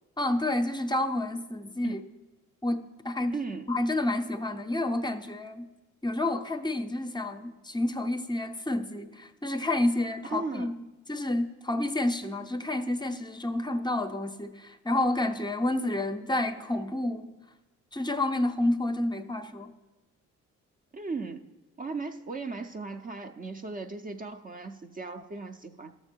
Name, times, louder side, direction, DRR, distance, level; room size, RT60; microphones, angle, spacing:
voice 1, 0.2-2.0 2.6-3.3 3.7-5.7 6.0-17.3 17.9-19.7, left 1 dB, 15° left, 8 dB, 0.6 m, -29 dB
voice 2, 3.3-3.7 10.3-10.7 20.9-21.5 21.8-25.9, right 4 dB, 30° right, 6 dB, 0.5 m, -37 dB
12.5 x 6.7 x 4.4 m, 1.1 s
cardioid pair, 90°, 30 cm